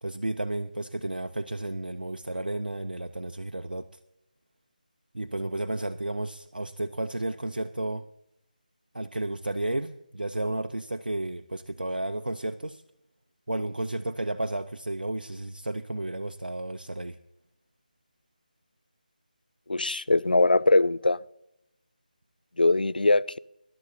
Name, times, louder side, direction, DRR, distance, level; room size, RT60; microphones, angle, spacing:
voice 1, 0.0-3.9 5.1-8.1 8.9-12.8 13.5-17.2, right 1 dB, 80° right, 0.6 m, -32 dB
voice 2, 19.7-21.2 22.6-23.4, left 2 dB, 75° left, 0.4 m, -22 dB
20.5 x 11.5 x 2.7 m
figure-of-eight pair, 155°, 5 cm